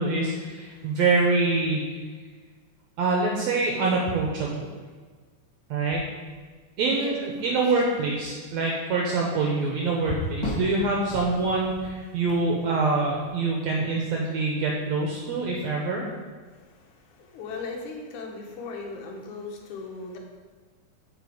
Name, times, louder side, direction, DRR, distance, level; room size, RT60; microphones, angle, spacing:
voice 1, 0.0-1.9 3.0-4.7 5.7-6.0 6.8-16.1, right 3 dB, 70° right, -2 dB, 1.9 m, -25 dB
voice 2, 0.7-1.0 6.9-7.6 16.5-20.2, left 3 dB, 75° left, 1 dB, 2.5 m, -38 dB
sound 1, 2.8-3.0 3.6-3.7 5.9-6.7 7.3-7.5 9.9-13.6 17.5-17.7, left 1 dB, 20° left, 1.0 m, -36 dB
8.1 x 5.1 x 4.9 m, 1.5 s
omnidirectional pair, 3.6 m